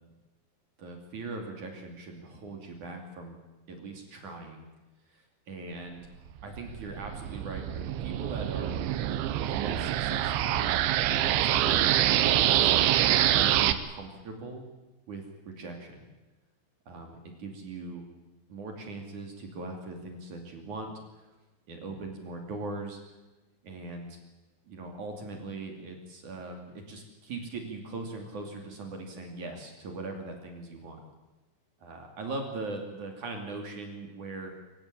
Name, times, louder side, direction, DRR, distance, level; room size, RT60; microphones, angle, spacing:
voice 1, 0.8-3.4 3.7-4.7 5.1-6.0 6.4-8.8 9.5-10.7 11.2-14.7 15.1-16.1 16.9-18.1 18.5-20.9 21.7-23.0 23.6-24.2 24.7-31.0 31.8-34.5, right 3 dB, 45° right, 3 dB, 3.4 m, -40 dB
sound 1, 6.4-13.7, right 12 dB, 75° right, 3.1 m, -25 dB
25.5 x 16.5 x 8.8 m, 1.1 s
omnidirectional pair, 5.8 m